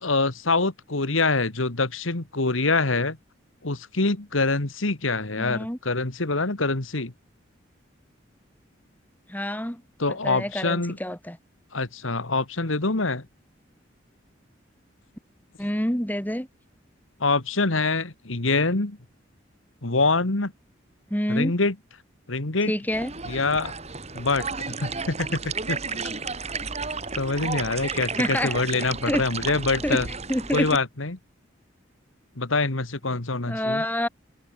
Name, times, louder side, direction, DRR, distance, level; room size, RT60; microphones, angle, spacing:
voice 1, 0.0-3.2 3.6-7.1 10.0-11.0 11.7-13.2 17.2-19.0 19.8-20.5 21.3-21.7 22.3-22.7 23.3-23.7 24.1-24.5 24.8-25.8 27.1-30.1 30.5-31.2 32.4-33.8, left 3 dB, 85° left, 2.1 m, -25 dB
voice 2, 5.4-5.8 9.3-9.8 10.1-11.4 15.6-16.5 21.1-21.5 22.7-23.1 27.9-29.2 29.8-30.8 33.5-34.1, equal, 10° left, 4.1 m, -28 dB
sound 1, 22.9-30.8, right 4 dB, 35° right, 3.9 m, -32 dB
head